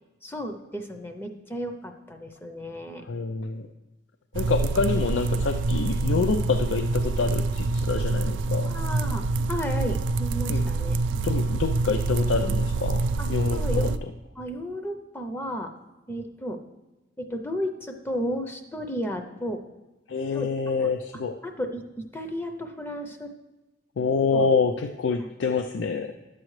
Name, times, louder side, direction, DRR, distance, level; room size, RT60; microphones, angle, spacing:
voice 1, 0.2-3.1 8.6-9.2 9.5-11.0 13.2-14.0 14.4-15.7 16.1-16.6 17.2-19.6 20.3-20.5 21.4-23.3 24.3-24.5, equal, 10° left, 5 dB, 0.5 m, -33 dB
voice 2, 3.0-3.7 4.3-8.7 10.5-10.7 11.1-13.9 20.1-21.4 24.0-26.1, left 4 dB, 85° left, 7 dB, 0.4 m, -27 dB
sound 1, 4.3-14.0, right 3 dB, 80° right, 0.4 m, -26 dB
11.5 x 7.6 x 3.2 m, 1.1 s
head